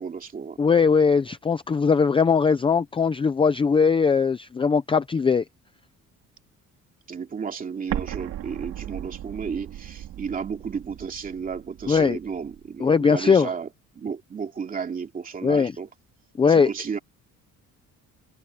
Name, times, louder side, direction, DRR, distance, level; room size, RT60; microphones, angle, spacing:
voice 1, 0.0-0.6 7.1-13.7 13.9-15.9 16.5-17.0, right 6 dB, 25° right, 2.7 m, -33 dB
voice 2, 0.6-5.4 11.9-12.2 12.8-13.5 15.4-15.7 16.4-16.7, left 5 dB, 15° left, 0.5 m, -20 dB
Explosion, 7.9-12.7, right 12 dB, 60° right, 2.8 m, -37 dB
cardioid pair, 180°, 32 cm